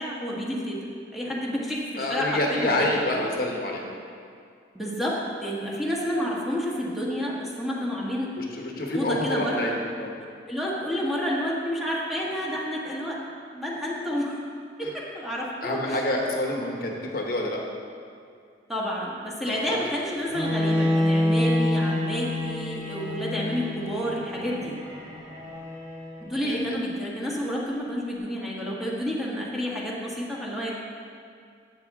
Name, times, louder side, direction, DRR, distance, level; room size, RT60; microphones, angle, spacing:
voice 1, 0.0-3.1 4.7-8.3 8.9-9.7 10.2-13.2 13.5-14.4 14.8-16.0 18.7-24.8 26.2-30.7, equal, ahead, -5 dB, 1.4 m, -30 dB
voice 2, 2.0-3.8 5.7-5.8 8.4-10.1 15.6-17.6 19.4-19.8 23.1-23.2 26.4-26.8, left 1 dB, 50° left, 0 dB, 1.1 m, -28 dB
Bowed string instrument, 20.3-26.3, left 1 dB, 25° right, 2.3 m, -27 dB
11.5 x 8.4 x 3.6 m, 2.3 s
head